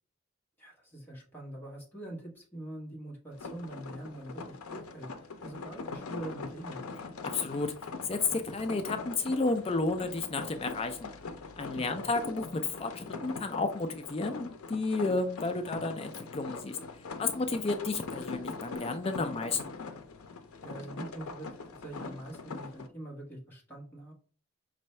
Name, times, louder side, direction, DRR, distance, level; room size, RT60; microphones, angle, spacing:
voice 1, 0.6-5.1 5.4-6.8 11.7-12.1 20.6-24.1, right 1 dB, 10° left, -4 dB, 1.2 m, -44 dB
sound 1, 3.3-22.9, left 4 dB, 80° left, 0.6 m, -42 dB
voice 2, 7.3-7.7 8.0-11.1 11.6-16.8 17.2-19.6, left 3 dB, 25° left, 7 dB, 0.3 m, -32 dB
5.4 x 2.6 x 3.2 m, 0.43 s
head